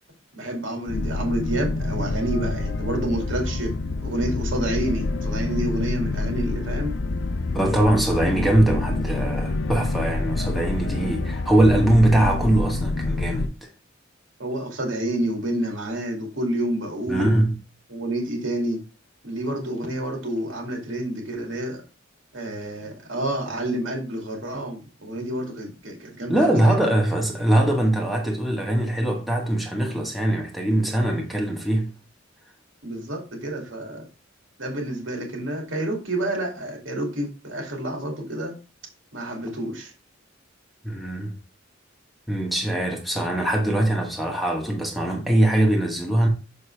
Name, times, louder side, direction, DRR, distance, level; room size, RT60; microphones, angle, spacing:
voice 1, 0.3-3.7 4.0-6.9 14.4-17.4 17.9-18.8 19.2-21.8 22.3-26.8 32.8-34.0 34.6-38.5 39.1-39.9, right 1 dB, 75° right, 2.3 m, -29 dB
sound 1, 0.9-13.5, left 2 dB, 60° left, 0.5 m, -27 dB
voice 2, 7.5-13.5 17.1-17.6 26.3-31.9 40.8-41.3 42.3-46.3, right 1 dB, ahead, 1.1 m, -22 dB
6.6 x 5.4 x 3.3 m
head